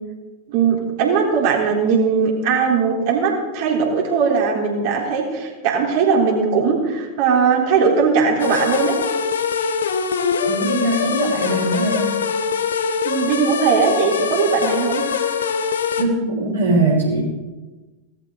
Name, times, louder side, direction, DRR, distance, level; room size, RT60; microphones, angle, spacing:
voice 1, 0.5-9.0 13.0-15.0, right 5 dB, 50° right, -1 dB, 3.7 m, -19 dB
sound 1, 8.4-16.0, left 6 dB, 65° left, 1.1 m, -23 dB
voice 2, 10.4-12.0 16.0-17.2, right 2 dB, 80° right, -8 dB, 5.6 m, -20 dB
18.0 x 14.0 x 4.0 m, 1.2 s
figure-of-eight pair, 90°, 0 cm